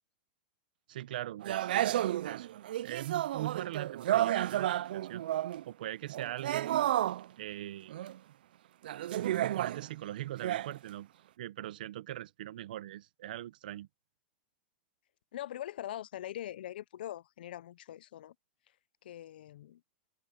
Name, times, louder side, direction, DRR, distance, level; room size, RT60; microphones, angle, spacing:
voice 1, 0.9-2.5 2.8-5.2 5.7-6.8 7.4-8.0 9.2-11.1 11.4-13.9, right 14 dB, 65° right, 0.9 m, -41 dB
sound 1, 1.4-5.6 6.1-7.2 7.9-8.2 8.8-9.9 10.4-10.7, right 13 dB, 85° right, 0.3 m, -31 dB
voice 2, 15.3-18.3 19.0-19.8, left 12 dB, 85° left, 0.5 m, -42 dB
supercardioid pair, 175°, 5 cm